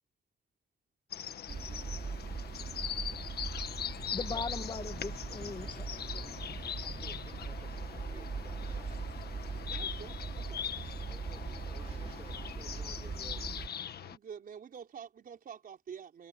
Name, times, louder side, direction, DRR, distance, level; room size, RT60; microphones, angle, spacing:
sound 1, 1.1-14.2, left 9 dB, 60° left, 1.5 m, -41 dB
sound 2, 1.5-13.7, right 5 dB, 35° right, 3.8 m, -41 dB
voice 1, 4.1-6.3, left 4 dB, 25° left, 2.3 m, -40 dB
voice 2, 6.8-8.9 11.1-13.5, right 2 dB, 15° right, 7.2 m, -56 dB
voice 3, 9.4-10.7 14.0-16.3, right 7 dB, 55° right, 4.3 m, -48 dB
wide cardioid pair, 145°, 18 cm